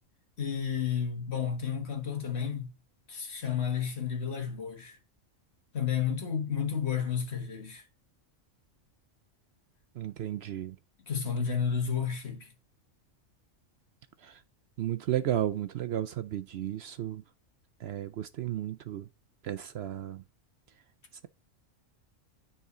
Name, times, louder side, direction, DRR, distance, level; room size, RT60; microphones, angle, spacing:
voice 1, 0.4-2.7 3.1-5.0 5.7-7.8 11.1-12.5, left 7 dB, 55° left, 1.7 m, -31 dB
voice 2, 9.9-10.8 14.2-14.4 14.8-17.2 17.8-19.1 19.4-20.2, right 11 dB, 65° right, 0.7 m, -33 dB
9.7 x 4.3 x 3.9 m
omnidirectional pair, 1.3 m